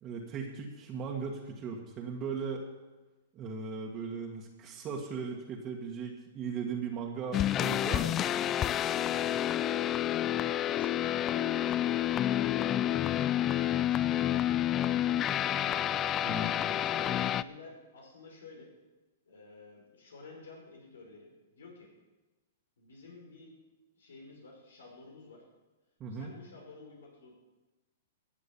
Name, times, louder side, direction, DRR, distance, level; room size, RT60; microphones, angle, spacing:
voice 1, 0.0-2.6 3.3-8.2 16.2-16.5 26.0-26.3, right 5 dB, 30° right, -1 dB, 1.9 m, -38 dB
sound 1, 7.3-17.4, left 12 dB, 25° left, 0.3 m, -29 dB
voice 2, 13.8-15.7 16.1-18.7 19.3-21.9 22.8-23.5 24.0-25.4 26.1-27.3, left 3 dB, 85° left, 0 dB, 5.3 m, -51 dB
14.5 x 8.8 x 7.2 m, 1.2 s
hypercardioid pair, 125°, 0 cm